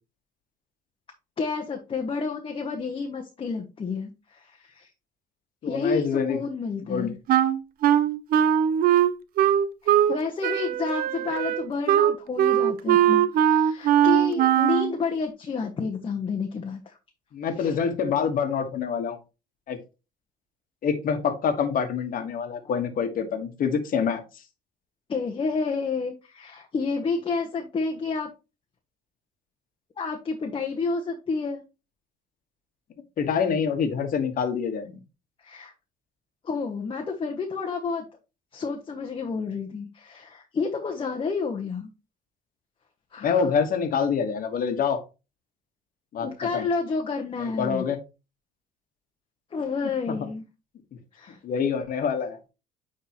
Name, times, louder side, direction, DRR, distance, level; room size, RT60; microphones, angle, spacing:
voice 1, 1.4-4.9 5.6-7.2 9.8-17.0 17.6-17.8 25.1-28.3 30.0-31.6 35.4-35.7 36.4-38.0 38.5-41.9 43.1-43.5 46.2-47.8 49.5-50.4 51.1-51.4, left 4 dB, 30° left, 3 dB, 0.9 m, -30 dB
voice 2, 5.6-6.4 6.8-7.1 17.3-19.2 19.7-19.8 20.8-24.2 33.2-35.0 43.2-45.0 46.1-46.3 46.5-46.7 47.4-48.0 50.1-50.2 51.4-52.4, left 6 dB, 55° left, 8 dB, 1.3 m, -26 dB
Wind instrument woodwind instrument, 7.3-10.2 10.4-14.9, right 10 dB, 60° right, 0.5 m, -20 dB
9.3 x 3.7 x 2.9 m, 0.29 s
cardioid pair, 110°, 17 cm